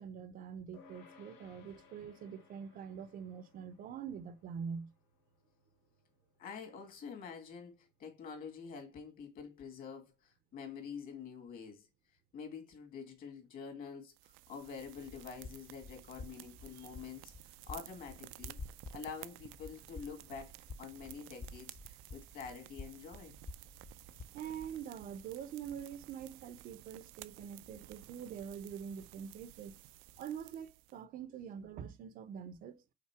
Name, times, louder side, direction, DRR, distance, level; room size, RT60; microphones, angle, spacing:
voice 1, 0.0-4.9 16.8-16.9 24.3-29.8 30.2-32.8, right 7 dB, 45° right, 0.6 m, -45 dB
sound 1, 0.7-10.4, left 5 dB, 80° left, 2.0 m, -65 dB
voice 2, 6.4-11.9 12.3-17.3 17.7-18.6 18.9-20.5 20.8-23.3, left 6 dB, 45° left, 2.2 m, -47 dB
sound 2, 14.1-31.0, right 17 dB, 85° right, 0.5 m, -55 dB
sound 3, 14.9-24.8, left 3 dB, 20° left, 0.5 m, -51 dB
5.8 x 3.9 x 4.7 m
cardioid pair, 150°, 20 cm